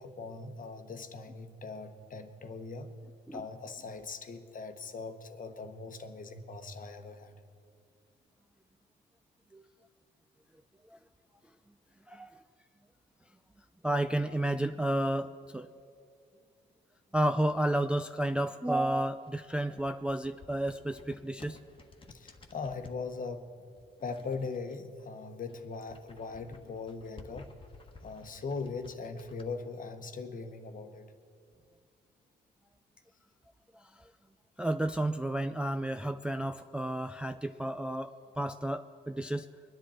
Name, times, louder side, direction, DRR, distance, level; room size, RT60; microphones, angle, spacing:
voice 1, 0.0-2.9 3.3-7.4 22.1-23.7 24.0-27.6 28.0-31.1, left 4 dB, 45° left, 8 dB, 1.1 m, -40 dB
voice 2, 13.8-15.7 17.1-21.6 34.6-39.5, right 1 dB, 5° right, 8 dB, 0.3 m, -31 dB
sound 1, 19.2-23.0 23.7-25.1 25.4-29.5, left 3 dB, 25° left, 1.3 m, -54 dB
23.0 x 10.0 x 4.3 m, 2.3 s
cardioid pair, 90°, 20 cm